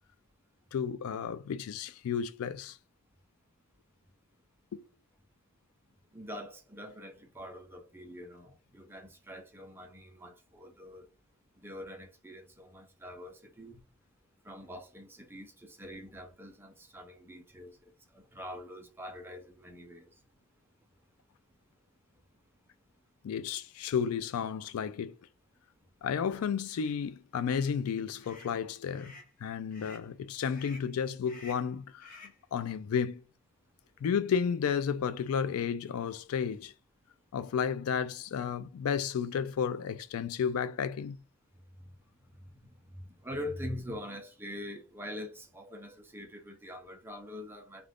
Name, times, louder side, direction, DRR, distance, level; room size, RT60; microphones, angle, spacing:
voice 1, 0.7-2.8 4.7-4.8 23.2-25.2 26.0-29.1 29.4-32.1 32.5-33.2 34.0-36.7 37.3-41.2, left 7 dB, 85° left, 0.3 m, -32 dB
voice 2, 6.1-11.1 11.6-13.8 14.4-20.1 42.3-47.9, left 1 dB, 10° right, 0.5 m, -44 dB
sound 1, 26.6-26.9 27.4-27.8 28.2-28.5 28.9-29.3 29.7-30.1 30.5-30.9 31.2-31.7 32.0-32.4, left 3 dB, 40° left, 0.9 m, -52 dB
2.4 x 2.3 x 3.4 m
head